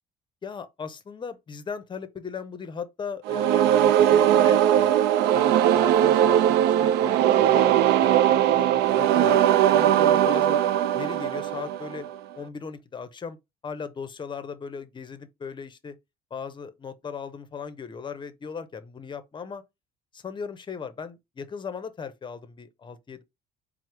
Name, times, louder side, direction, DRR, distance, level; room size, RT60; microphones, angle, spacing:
voice 1, 0.4-5.0 5.3-9.4 9.7-10.6 10.9-12.1 12.4-13.4 13.6-16.0 16.3-19.6 20.1-23.2, left 6 dB, 30° left, 0.6 m, -37 dB
sound 1, 3.3-12.1, right 11 dB, 85° right, 0.4 m, -20 dB
4.5 x 2.0 x 4.4 m
cardioid pair, 110°, 17 cm